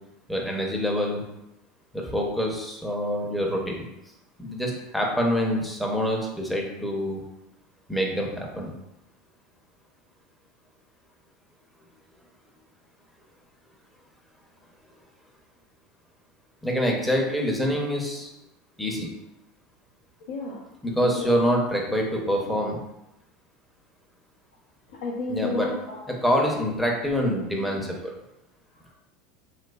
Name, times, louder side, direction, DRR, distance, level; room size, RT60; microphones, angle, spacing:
voice 1, 0.3-1.3 1.9-3.8 4.4-7.2 7.9-8.7 16.6-18.3 18.8-19.1 20.8-22.8 25.3-25.7 26.1-28.1, equal, ahead, -1 dB, 0.6 m, -26 dB
voice 2, 20.3-20.6 21.0-21.4 24.9-26.1, left 3 dB, 85° left, -5 dB, 0.6 m, -31 dB
3.1 x 3.0 x 2.2 m, 0.89 s
supercardioid pair, 120°, 0 cm